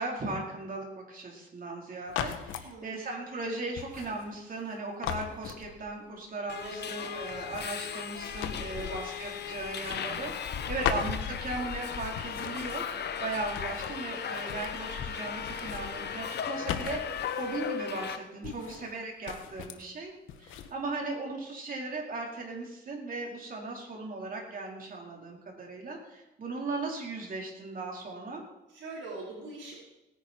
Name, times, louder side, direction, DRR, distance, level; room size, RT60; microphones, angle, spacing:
voice 1, 0.0-20.1 20.4-28.4, right 2 dB, 45° right, -1 dB, 4.6 m, -37 dB
sound 1, 2.1-2.7 3.8-4.7 5.0-6.1 7.3-9.2 9.6-10.6 10.8-11.8 12.1-14.0 14.2-15.1 15.4-17.6 18.4-19.0 19.2-19.9 20.3-20.7, left 9 dB, 85° left, 1.3 m, -39 dB
voice 2, 2.6-3.0 6.6-7.3 8.7-9.2 9.4-9.6 10.7-10.8 18.4-18.7 28.7-29.8, right 2 dB, 70° right, -3 dB, 4.9 m, -43 dB
Subway metro underground, 6.5-18.2, left 7 dB, 55° left, 1.2 m, -36 dB
18.0 x 10.5 x 4.6 m, 0.97 s
cardioid pair, 90°, 20 cm